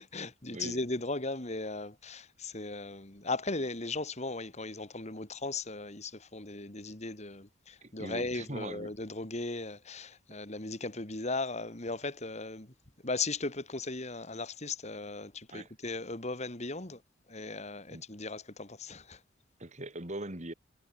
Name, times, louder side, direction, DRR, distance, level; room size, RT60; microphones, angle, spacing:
voice 1, 0.0-12.7 13.0-17.0 17.3-19.2, left 3 dB, 35° left, 2.5 m, -37 dB
voice 2, 7.8-8.9 15.5-15.7 17.9-18.0 19.6-20.5, right 1 dB, 40° right, 2.6 m, -41 dB
head